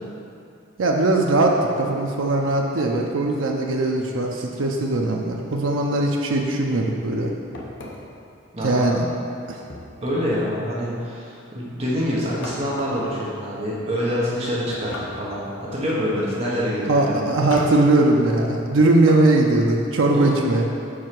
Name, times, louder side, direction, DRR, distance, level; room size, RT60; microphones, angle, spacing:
voice 1, 0.8-7.3 8.6-9.0 9.5-9.6 16.9-20.7, right 2 dB, 75° right, 0 dB, 0.6 m, -20 dB
sound 1, 7.5-8.2 9.7-10.4 12.4-13.1 14.7-15.5 17.5-17.9, left 1 dB, 60° left, 0.8 m, -37 dB
voice 2, 8.5-8.8 10.0-17.2 20.1-20.3, equal, 30° right, -6 dB, 1.1 m, -26 dB
4.9 x 4.6 x 5.9 m, 2.5 s
head